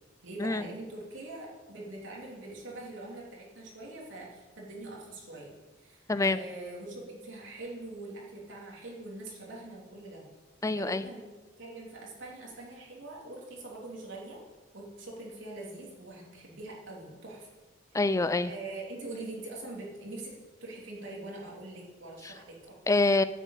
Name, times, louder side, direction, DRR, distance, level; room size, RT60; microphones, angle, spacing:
voice 1, 0.2-10.3 10.7-11.2 11.6-14.4 14.7-17.5 17.9-18.0 18.4-20.3 20.6-22.7, right 2 dB, 75° right, -3 dB, 3.3 m, -43 dB
voice 2, 10.6-11.0 17.9-18.5 22.9-23.2, left 2 dB, 15° left, 14 dB, 0.4 m, -25 dB
10.0 x 7.7 x 8.3 m, 1.4 s
head